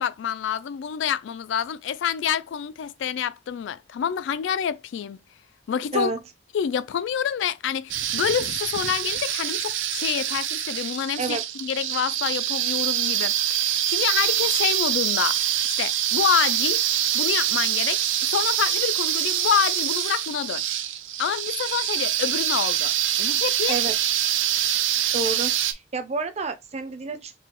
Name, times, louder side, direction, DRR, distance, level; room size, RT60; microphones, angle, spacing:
voice 1, 0.0-5.2 5.7-6.1 6.5-16.8 17.1-20.6 21.2-23.8, left 8 dB, 75° left, 0.3 m, -27 dB
sound 1, 7.9-25.7, right 11 dB, 85° right, 0.5 m, -25 dB
voice 2, 25.1-27.3, right 3 dB, 35° right, 0.5 m, -29 dB
4.7 x 2.3 x 2.9 m
head